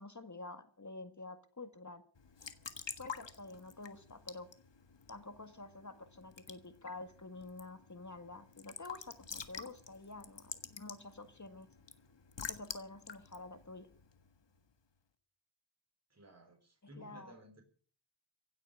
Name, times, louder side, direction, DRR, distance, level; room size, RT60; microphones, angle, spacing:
voice 1, 0.0-2.0 3.0-4.5 5.1-11.7 12.5-13.9 17.0-17.3, left 3 dB, 40° left, 10 dB, 1.7 m, -49 dB
Raindrop / Drip / Trickle dribble, 2.2-14.6, left 6 dB, 65° left, 1.6 m, -49 dB
voice 2, 16.1-17.6, right 1 dB, 35° right, 3 dB, 4.2 m, -56 dB
16.5 x 8.6 x 8.2 m, 0.43 s
wide cardioid pair, 75°, 46 cm